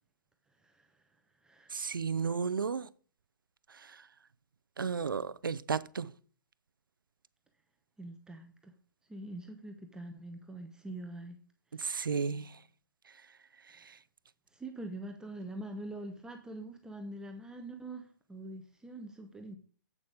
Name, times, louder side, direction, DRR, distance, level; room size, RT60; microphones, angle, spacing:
voice 1, 0.6-1.0 1.4-1.8 8.0-8.7 9.1-11.4 13.8-13.9 14.5-19.6, right 1 dB, 5° right, 0.9 m, -44 dB
voice 2, 1.7-2.9 4.8-6.1 11.8-12.5, right 5 dB, 85° right, 0.6 m, -33 dB
8.2 x 7.1 x 5.0 m
hypercardioid pair, 130°, 11 cm